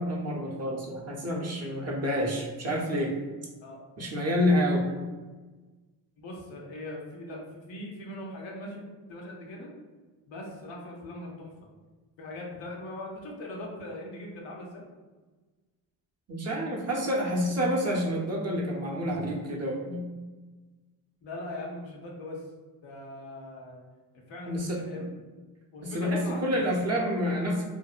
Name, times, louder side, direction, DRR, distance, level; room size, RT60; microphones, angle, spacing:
voice 1, 0.0-3.2 4.0-4.9 16.3-20.0 24.5-24.9 25.8-27.6, equal, 35° right, -2 dB, 0.6 m, -28 dB
voice 2, 6.2-8.8 9.1-9.7 10.3-11.7 12.2-14.8 21.2-22.4 22.8-23.8 24.3-25.1 25.7-27.1, left 1 dB, 75° left, -2 dB, 0.8 m, -40 dB
2.6 x 2.0 x 2.3 m, 1.3 s
cardioid pair, 60°, 46 cm